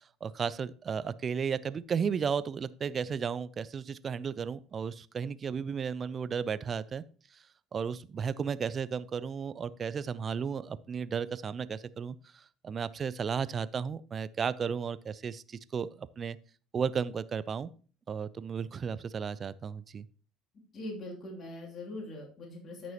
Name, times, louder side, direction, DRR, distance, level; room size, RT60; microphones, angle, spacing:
voice 1, 0.2-7.0 7.7-16.4 16.7-17.7 18.1-20.1, right 6 dB, 35° right, 17 dB, 0.5 m, -34 dB
voice 2, 20.7-22.9, left 1 dB, 40° left, -1 dB, 2.8 m, -41 dB
13.5 x 6.1 x 2.9 m, 0.40 s
figure-of-eight pair, 60°, 0 cm